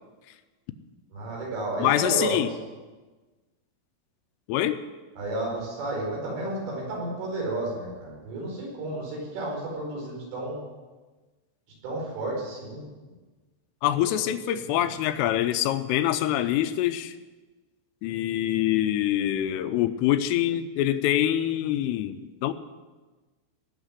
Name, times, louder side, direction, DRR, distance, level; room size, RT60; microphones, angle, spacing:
voice 1, 1.1-2.5 5.2-10.6 11.8-12.8 14.0-14.3 14.5-14.7, right 2 dB, 70° right, -3 dB, 7.3 m, -32 dB
voice 2, 1.8-2.5 4.5-4.8 13.8-17.1 18.0-22.5, left 12 dB, 85° left, 9 dB, 3.2 m, -25 dB
19.0 x 7.3 x 9.7 m, 1.3 s
omnidirectional pair, 5.9 m